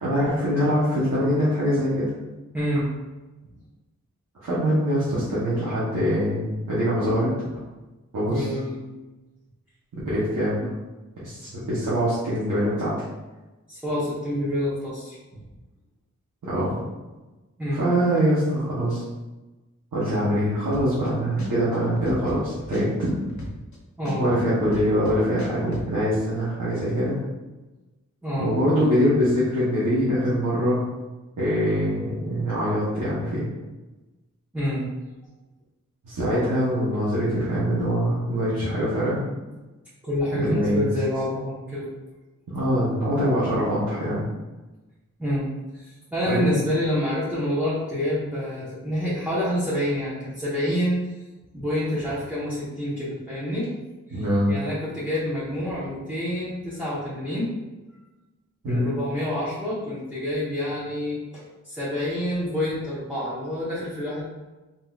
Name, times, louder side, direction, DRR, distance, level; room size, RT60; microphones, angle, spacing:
voice 1, 0.0-2.1 4.4-7.3 8.1-8.5 10.0-10.7 11.2-12.9 16.4-16.8 17.7-19.0 19.9-23.1 24.2-27.2 28.4-30.8 31.4-33.4 36.0-39.2 40.3-40.9 42.5-44.2 46.2-46.5 54.1-54.5 58.6-58.9, equal, 90° right, -10 dB, 0.9 m, -23 dB
voice 2, 2.5-2.9 8.3-8.8 13.7-15.4 17.6-17.8 24.0-24.2 28.2-28.5 34.5-34.9 40.0-41.9 45.2-45.5 45.7-51.0 51.5-53.7 54.1-57.5 58.6-64.2, equal, 5° right, -10 dB, 1.0 m, -27 dB
sound 1, 20.7-21.1 21.4-23.8 24.1-25.9, equal, 65° left, 0.8 m, -35 dB
3.7 x 2.7 x 2.3 m, 1.1 s
wide cardioid pair, 80°, 31 cm